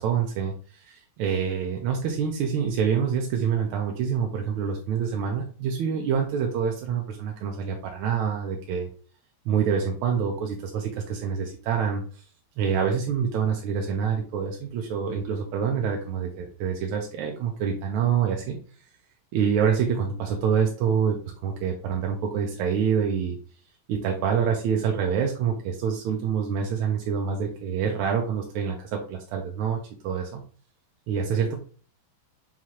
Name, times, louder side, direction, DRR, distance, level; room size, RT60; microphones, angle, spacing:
voice 1, 0.0-8.9 9.4-12.3 12.6-18.6 19.3-23.4 23.9-30.4 31.1-31.6, right 7 dB, 90° right, 1 dB, 1.4 m, -26 dB
5.6 x 2.4 x 3.0 m, 0.42 s
omnidirectional pair, 2.3 m